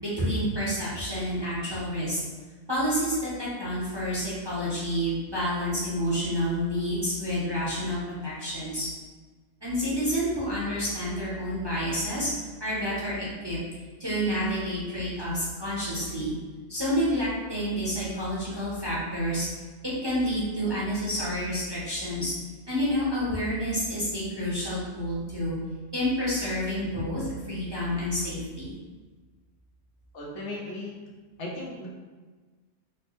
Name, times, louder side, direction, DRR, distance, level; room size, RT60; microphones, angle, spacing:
voice 1, 0.0-2.2 2.7-8.9 9.6-12.3 12.6-13.2 13.4-13.6 14.0-16.3 16.7-19.5 19.8-22.3 22.7-25.6 25.9-28.7, equal, 25° right, -8 dB, 0.7 m, -29 dB
voice 2, 30.1-31.0 31.4-31.9, left 2 dB, 70° left, -4 dB, 1.1 m, -36 dB
4.3 x 2.0 x 3.0 m, 1.4 s
omnidirectional pair, 1.3 m